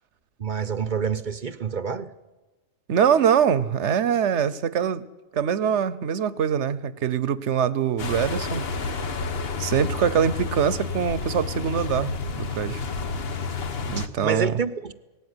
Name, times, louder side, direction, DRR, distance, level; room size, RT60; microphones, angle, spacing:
voice 1, 0.4-2.1 14.0-14.9, right 6 dB, 40° right, 0.9 m, -28 dB
voice 2, 2.9-5.0 5.3-8.6 9.6-12.8 13.8-14.5, right 8 dB, 65° right, 1.2 m, -23 dB
sound 1, 8.0-14.1, left 4 dB, 50° left, 1.4 m, -30 dB
19.5 x 17.0 x 9.7 m
omnidirectional pair, 1.3 m